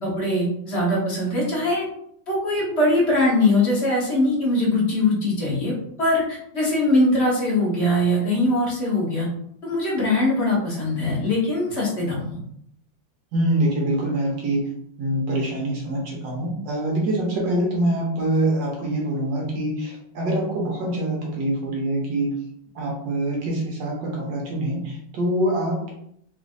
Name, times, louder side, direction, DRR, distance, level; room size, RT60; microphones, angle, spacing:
voice 1, 0.0-1.9 2.3-5.7 6.0-9.3 9.6-12.4, left 1 dB, 35° left, -5 dB, 1.4 m, -21 dB
voice 2, 13.3-14.7 15.0-22.3 22.7-25.9, right 1 dB, 70° right, -2 dB, 1.5 m, -24 dB
4.1 x 3.0 x 2.6 m, 0.70 s
omnidirectional pair, 2.2 m